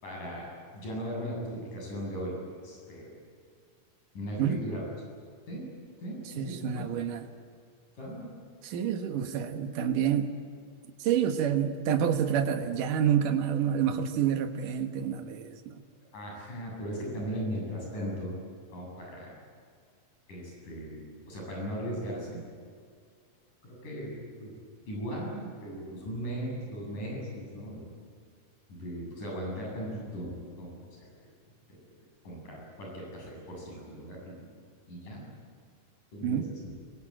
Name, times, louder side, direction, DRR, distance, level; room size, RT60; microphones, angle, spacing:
voice 1, 0.0-3.1 4.1-4.8 5.5-5.7 6.0-6.9 8.0-8.3 16.1-18.4 18.7-19.3 20.3-22.4 23.6-24.2 24.4-24.5 24.9-27.9 28.7-31.2 31.7-31.8 32.2-34.5 34.9-35.3 36.1-36.5, equal, 70° left, -1 dB, 9.5 m, -38 dB
voice 2, 6.4-7.3 8.6-10.4 11.0-15.8 36.2-36.5, right 8 dB, 75° right, 6 dB, 3.0 m, -28 dB
23.0 x 22.5 x 8.9 m, 2.2 s
omnidirectional pair, 3.8 m